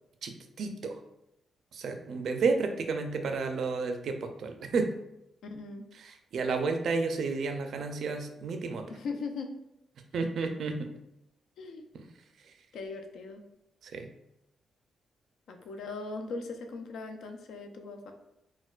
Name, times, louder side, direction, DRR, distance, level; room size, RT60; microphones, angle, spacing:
voice 1, 0.2-1.0 1.7-4.9 5.9-8.9 10.1-10.9 11.9-12.1 12.4-12.5 13.8-14.1, right 4 dB, 65° right, 6 dB, 0.4 m, -31 dB
voice 2, 5.5-5.9 8.9-9.5 11.6-11.9 12.7-13.4 15.5-18.1, left 3 dB, 80° left, 5 dB, 0.4 m, -39 dB
4.2 x 2.1 x 2.4 m, 0.86 s
cardioid pair, 135°, 0 cm